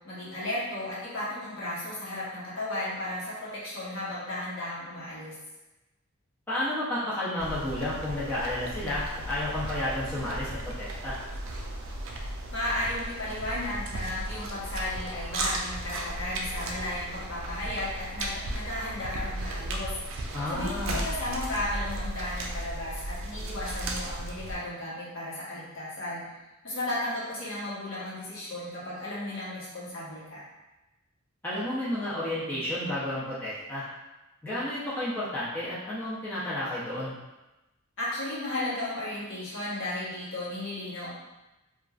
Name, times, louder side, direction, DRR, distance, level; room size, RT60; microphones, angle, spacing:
voice 1, 0.0-5.3 12.5-19.9 20.5-26.3 26.6-30.4 38.0-41.1, left 1 dB, 60° left, -8 dB, 1.0 m, -34 dB
voice 2, 6.5-11.2 20.3-21.1 31.4-33.8 34.4-37.1, left 1 dB, 10° left, -11 dB, 0.6 m, -31 dB
sound 1, 7.4-24.6, right 1 dB, 60° right, 0.4 m, -35 dB
2.9 x 2.4 x 2.3 m, 1.0 s
head